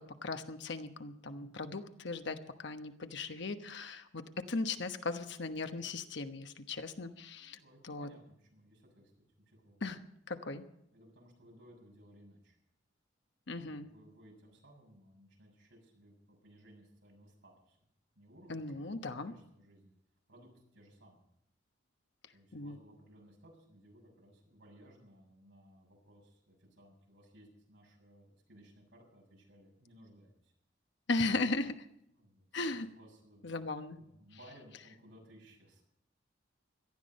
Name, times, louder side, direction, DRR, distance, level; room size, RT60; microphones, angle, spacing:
voice 1, 0.0-7.6 7.8-8.1 9.8-10.0 10.3-10.6 13.5-13.9 18.5-19.3 22.2-22.8 31.1-31.9 32.5-32.9 33.4-34.0, left 3 dB, 65° left, 8 dB, 1.1 m, -37 dB
voice 2, 7.4-9.1 9.5-9.8 10.9-12.6 13.5-17.8 18.2-19.9 20.3-21.2 22.3-30.5 32.1-32.5 32.8-33.6 33.9-35.8, equal, 70° right, 0 dB, 6.8 m, -60 dB
18.0 x 13.0 x 5.3 m, 0.77 s
head